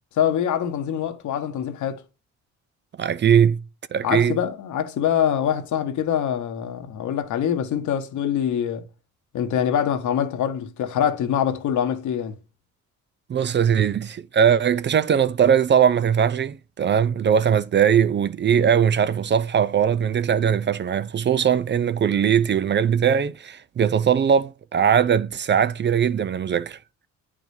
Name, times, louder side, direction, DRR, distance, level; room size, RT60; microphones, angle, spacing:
voice 1, 0.2-2.0 4.0-8.8 9.3-12.3, left 9 dB, 75° left, 1.2 m, -24 dB
voice 2, 3.0-3.6 3.9-4.4 13.3-26.8, right 8 dB, 35° right, 0.5 m, -20 dB
9.1 x 5.0 x 2.7 m
cardioid pair, 90°, 30 cm